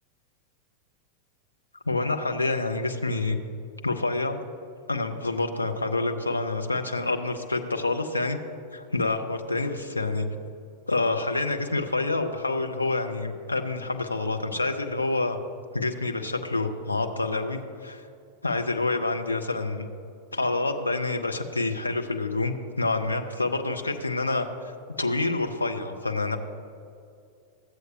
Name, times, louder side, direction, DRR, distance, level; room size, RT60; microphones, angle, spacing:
voice 1, 1.9-3.4 3.8-4.4 4.9-8.4 8.7-10.3 10.9-15.4 15.7-18.0 18.4-19.9 20.3-24.5 25.0-26.4, left 2 dB, 80° left, 5 dB, 0.6 m, -27 dB
14.0 x 7.8 x 2.8 m, 2.5 s
figure-of-eight pair, 90°, 0 cm